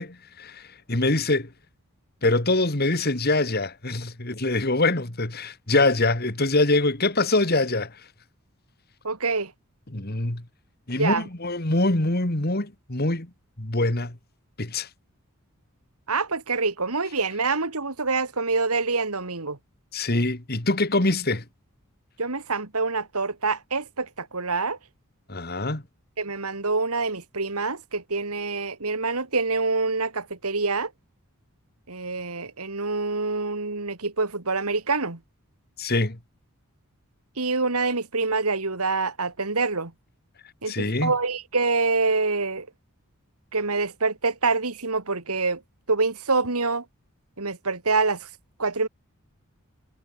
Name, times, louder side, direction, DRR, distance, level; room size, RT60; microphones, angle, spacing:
voice 1, 0.0-1.5 2.2-8.0 9.9-10.4 10.9-13.3 13.6-14.2 14.6-14.9 19.9-21.4 25.3-25.8 35.8-36.2 40.7-41.1, left 2 dB, 45° left, 2.4 m, -24 dB
voice 2, 9.0-9.5 11.0-11.3 16.1-19.6 22.2-24.8 26.2-30.9 31.9-35.2 37.4-39.9 40.6-42.7 43.5-45.6 45.9-46.8 47.4-48.3 48.6-48.9, right 3 dB, 85° right, 2.6 m, -26 dB
head